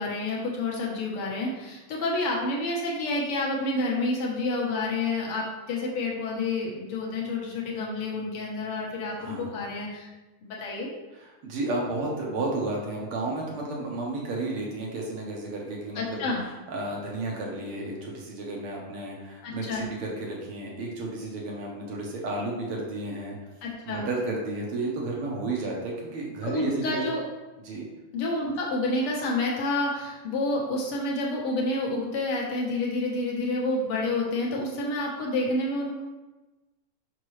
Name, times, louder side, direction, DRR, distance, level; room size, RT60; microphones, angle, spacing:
voice 1, 0.0-10.1 10.4-10.9 15.9-16.4 19.4-19.9 23.6-24.0 26.4-27.2 28.1-35.9, left 2 dB, 55° left, -3 dB, 1.7 m, -29 dB
voice 2, 9.2-9.5 11.1-23.4 23.8-27.1 27.6-27.9, right 2 dB, 60° right, -2 dB, 1.6 m, -32 dB
6.0 x 5.9 x 3.2 m, 1.1 s
omnidirectional pair, 3.6 m